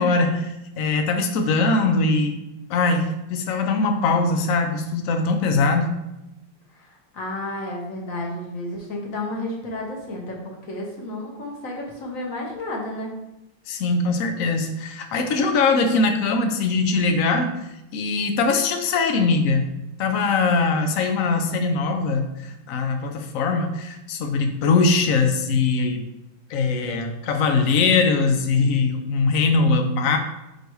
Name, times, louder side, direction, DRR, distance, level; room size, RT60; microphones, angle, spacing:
voice 1, 0.0-2.4 2.7-5.9 13.7-19.7 20.0-26.0 26.5-30.2, left 3 dB, 90° left, 5 dB, 0.7 m, -21 dB
voice 2, 6.7-13.1, left 1 dB, 45° left, -1 dB, 1.5 m, -32 dB
4.8 x 4.6 x 4.6 m, 0.94 s
omnidirectional pair, 2.2 m